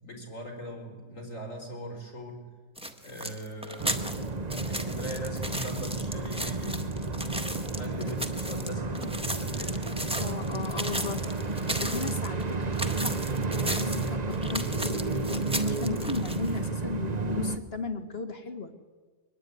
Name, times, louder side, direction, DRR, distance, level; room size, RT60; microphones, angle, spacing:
voice 1, 0.0-2.5 3.0-4.1 4.6-6.9 7.8-10.0, equal, 65° left, 3 dB, 5.9 m, -40 dB
sound 1, 2.8-16.7, equal, 5° right, 1.6 m, -36 dB
sound 2, 3.8-17.6, right 3 dB, 30° right, 1.2 m, -31 dB
sound 3, 9.0-9.2 9.7-9.9 10.5-10.6 11.2-11.3 11.9-12.0, right 4 dB, 65° right, 2.0 m, -49 dB
voice 2, 10.2-18.7, left 4 dB, 45° left, 6 dB, 2.3 m, -36 dB
24.0 x 20.0 x 9.5 m, 1.4 s
omnidirectional pair, 1.4 m